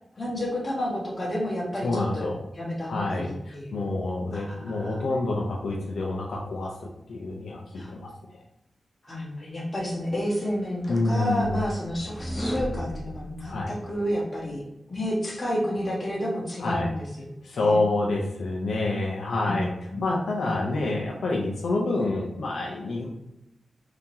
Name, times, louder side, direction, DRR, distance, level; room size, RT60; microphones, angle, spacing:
voice 1, 0.2-2.3 2.5-3.9 4.3-5.0 7.7-7.9 9.0-14.6 14.9-17.8 19.5-19.6 19.9-20.0 20.4-20.6, equal, 30° left, -6 dB, 1.3 m, -30 dB
voice 2, 1.8-2.4 2.9-6.7 7.1-8.1 10.9-11.6 13.5-13.7 16.6-16.9 17.4-19.7 20.0-23.1, left 2 dB, 90° left, -1 dB, 0.6 m, -27 dB
sound 1, 10.4-14.0, equal, 5° right, 0.4 m, -35 dB
3.7 x 2.9 x 2.8 m, 0.87 s
wide cardioid pair, 160°, 0 cm